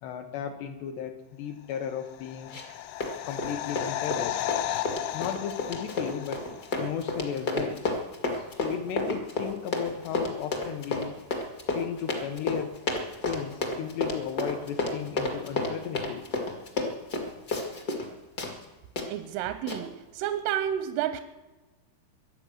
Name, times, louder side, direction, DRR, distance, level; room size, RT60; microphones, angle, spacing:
voice 1, 0.0-2.6 3.3-4.4 5.1-6.5 6.8-7.8 8.3-11.1 11.7-12.8 13.3-16.3, left 8 dB, 75° left, 5 dB, 2.7 m, -35 dB
sound 1, 2.0-6.8 7.1-7.2, left 13 dB, 90° left, 2.3 m, -34 dB
Run, 2.5-2.8 3.0-18.1 18.4-18.5 19.0-19.1 19.7-19.8, left 2 dB, 50° left, 1.1 m, -31 dB
voice 2, 19.1-21.2, right 10 dB, 90° right, 10 dB, 3.3 m, -30 dB
23.5 x 8.8 x 6.4 m, 1.2 s
omnidirectional pair, 5.5 m